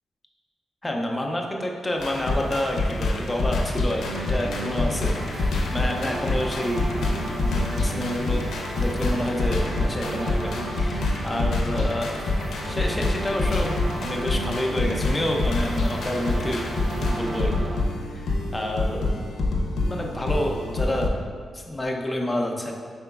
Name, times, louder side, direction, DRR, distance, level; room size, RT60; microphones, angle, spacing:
voice 1, 0.8-8.5 8.7-12.3 12.7-13.8 14.0-16.6 17.0-17.7 18.1-19.2 19.5-19.6 19.9-21.2 21.5-22.7, left 1 dB, 15° left, 1 dB, 0.5 m, -29 dB
sound 1, 2.0-21.1, left 2 dB, 85° left, 0.4 m, -27 dB
sound 2, 4.0-17.8, right 1 dB, 75° right, 0.7 m, -34 dB
4.9 x 3.7 x 2.3 m, 2.1 s
cardioid pair, 110°, 0 cm